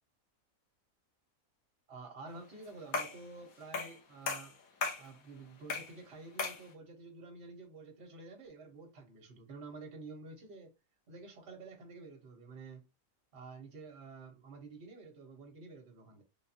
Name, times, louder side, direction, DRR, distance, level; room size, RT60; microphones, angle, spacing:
voice 1, 1.9-4.5 5.0-10.7 11.1-12.8 13.3-16.2, right 3 dB, 50° right, 1.3 m, -50 dB
sound 1, 2.9-3.2 3.7-4.0 4.3-5.1 5.7-6.0 6.4-6.7, left 4 dB, 85° left, 1.3 m, -36 dB
3.6 x 2.6 x 2.7 m
omnidirectional pair, 1.5 m